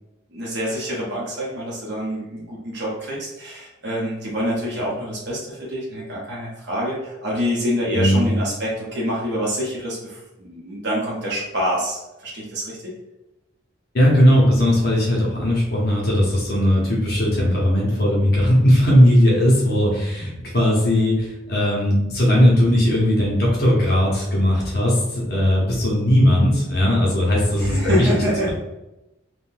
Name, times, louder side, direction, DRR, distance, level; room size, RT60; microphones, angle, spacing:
voice 1, 0.3-12.8 27.6-28.5, equal, 55° right, -5 dB, 0.7 m, -26 dB
voice 2, 13.9-28.1, equal, 50° left, -4 dB, 0.8 m, -18 dB
3.7 x 2.2 x 2.5 m, 0.96 s
head